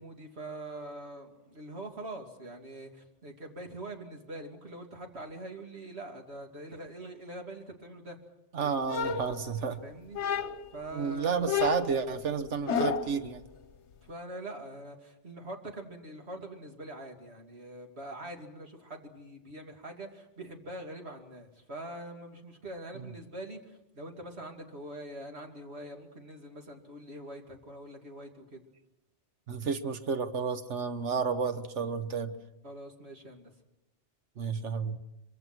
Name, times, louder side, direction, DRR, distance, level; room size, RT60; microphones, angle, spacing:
voice 1, 0.0-8.2 8.6-8.8 9.3-9.5 9.8-10.2 10.7-11.6 14.0-28.6 32.6-33.6, right 1 dB, 65° right, 2 dB, 3.0 m, -44 dB
voice 2, 8.5-9.8 10.9-13.4 29.5-32.4 34.4-35.0, right 5 dB, 85° right, 9 dB, 1.5 m, -31 dB
sound 1, 8.9-9.7 10.1-10.8 11.5-13.2, left 6 dB, 75° left, 1.3 m, -31 dB
25.0 x 24.0 x 6.1 m, 0.94 s
omnidirectional pair, 1.2 m